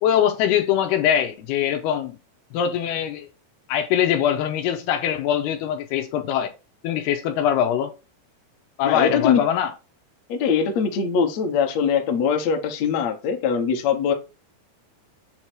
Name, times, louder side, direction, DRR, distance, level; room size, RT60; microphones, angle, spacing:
voice 1, 0.0-2.2 2.5-3.3 3.7-6.5 6.8-7.9 8.8-9.7, left 9 dB, 80° left, 2.5 m, -22 dB
voice 2, 8.8-9.4 10.3-14.1, left 6 dB, 65° left, 1.7 m, -22 dB
7.9 x 2.9 x 6.1 m
omnidirectional pair, 4.8 m